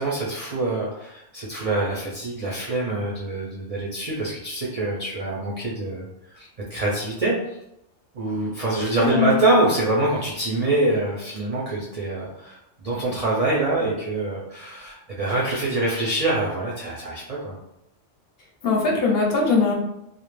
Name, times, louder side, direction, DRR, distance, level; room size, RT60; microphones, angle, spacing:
voice 1, 0.0-7.6 8.1-17.6, right 2 dB, 70° right, -5 dB, 0.3 m, -25 dB
voice 2, 9.0-9.5 18.6-19.7, left 4 dB, 60° left, -2 dB, 0.8 m, -21 dB
2.3 x 2.0 x 3.1 m, 0.82 s
omnidirectional pair, 1.2 m